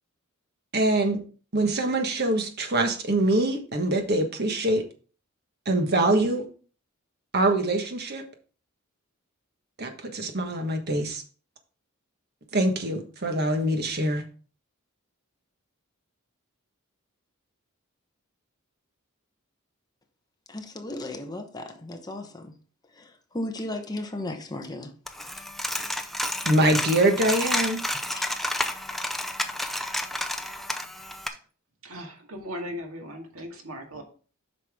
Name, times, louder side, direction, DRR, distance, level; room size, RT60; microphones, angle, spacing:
voice 1, 0.7-1.2 1.5-4.8 5.6-6.5 7.3-8.2 9.8-11.2 12.5-14.2 26.4-27.8, right 1 dB, 50° right, 1.3 m, -24 dB
voice 2, 20.5-22.6 22.9-24.9 28.1-28.2, left 1 dB, 20° left, 0.9 m, -35 dB
Coin (dropping), 25.1-31.3, left 1 dB, ahead, 0.5 m, -30 dB
voice 3, 31.8-34.0, equal, 80° right, 2.0 m, -38 dB
8.0 x 5.8 x 3.6 m
head